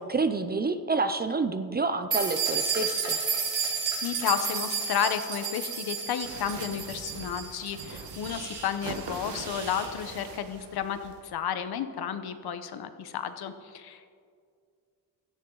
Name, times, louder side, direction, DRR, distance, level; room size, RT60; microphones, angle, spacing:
voice 1, 0.0-3.2, right 3 dB, 25° right, 10 dB, 0.5 m, -28 dB
sound 1, 2.1-9.9, right 5 dB, 45° right, 3.7 m, -32 dB
voice 2, 4.0-14.1, left 8 dB, 65° left, 10 dB, 1.0 m, -32 dB
sound 2, 6.2-11.2, right 5 dB, 85° right, 1.6 m, -42 dB
17.0 x 13.5 x 3.9 m, 2.2 s
wide cardioid pair, 155°, 40 cm